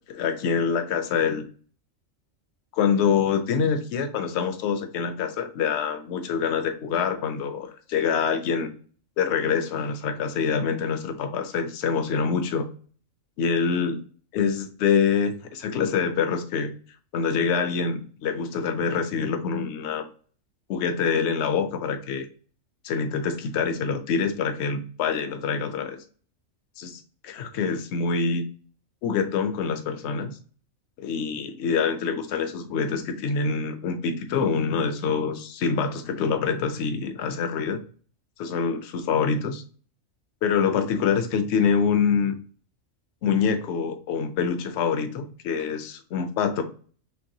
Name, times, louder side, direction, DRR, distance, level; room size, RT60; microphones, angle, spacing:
voice 1, 0.1-1.4 2.7-8.7 9.2-12.7 13.4-14.0 14.3-16.7 17.1-20.0 20.7-22.3 22.8-26.0 26.8-28.4 29.0-30.4 31.0-37.8 38.4-39.6 40.4-42.3 43.2-46.6, left 6 dB, 65° left, 7 dB, 0.8 m, -25 dB
4.6 x 3.2 x 2.7 m, 0.43 s
omnidirectional pair, 1.4 m